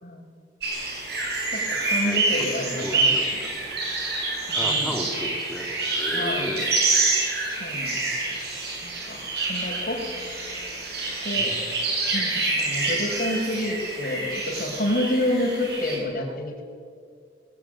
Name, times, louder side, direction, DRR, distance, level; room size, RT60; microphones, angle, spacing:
sound 1, 0.6-16.0, right 3 dB, 60° right, 7.9 m, -27 dB
voice 1, 1.5-3.3 4.5-5.0 6.1-6.5 7.5-8.4 8.8-9.2 9.5-10.0 11.2-11.5 12.1-16.6, left 1 dB, 50° left, 1 dB, 5.4 m, -29 dB
voice 2, 2.0-3.8 4.5-5.7 6.0-6.8 11.3-11.6, left 1 dB, ahead, 1 dB, 2.8 m, -35 dB
21.0 x 21.0 x 9.2 m, 2.3 s
head